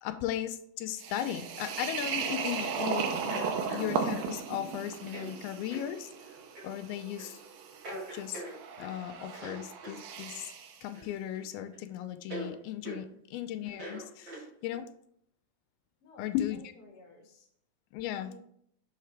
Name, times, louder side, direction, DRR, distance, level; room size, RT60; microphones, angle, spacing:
voice 1, 0.0-6.1 6.6-7.4 8.1-8.4 8.8-10.5 10.8-14.9 16.2-16.6 17.9-18.3, left 11 dB, 85° left, 9 dB, 2.5 m, -36 dB
sound 1, 1.0-10.8, right 6 dB, 80° right, 2.4 m, -36 dB
sound 2, 2.1-2.7 3.3-4.4 5.1-5.3 5.7-5.9 6.5-6.7 7.2-7.4 7.8-9.0 9.3-10.0 10.9-11.5 11.7-11.8 12.3-12.5 12.9-13.0 13.7-14.8, right 1 dB, 40° right, 2.0 m, -43 dB
voice 2, 16.0-17.5 18.0-18.4, left 3 dB, 45° left, -1 dB, 1.2 m, -54 dB
6.6 x 5.6 x 3.3 m, 0.68 s
omnidirectional pair, 4.3 m